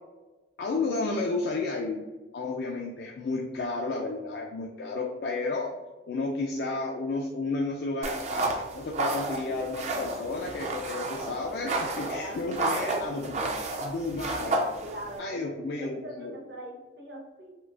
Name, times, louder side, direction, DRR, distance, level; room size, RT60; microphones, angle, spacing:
voice 1, 0.6-2.0 2.3-5.7 6.1-13.5 13.8-14.6 15.2-16.3, left 3 dB, 60° left, 0 dB, 0.3 m, -32 dB
sound 1, 8.0-15.2, right 2 dB, 35° right, 0.4 m, -32 dB
voice 2, 12.2-13.0 14.8-15.4 15.8-17.5, right 1 dB, 65° right, -2 dB, 0.7 m, -42 dB
3.7 x 2.4 x 2.3 m, 1.2 s
head